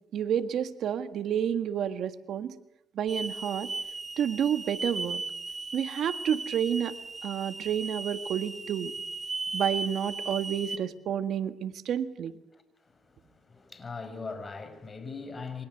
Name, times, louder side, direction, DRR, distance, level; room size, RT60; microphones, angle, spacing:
voice 1, 0.1-2.6 2.9-3.7 4.2-5.2 5.7-7.0 7.2-8.9 9.5-12.4, right 9 dB, 70° right, 1.7 m, -30 dB
Hiss / Alarm, 3.1-10.8, right 3 dB, 25° right, 2.5 m, -37 dB
voice 2, 12.5-15.7, left 4 dB, 30° left, 6.0 m, -41 dB
29.5 x 24.5 x 8.0 m
cardioid pair, 90°, 0 cm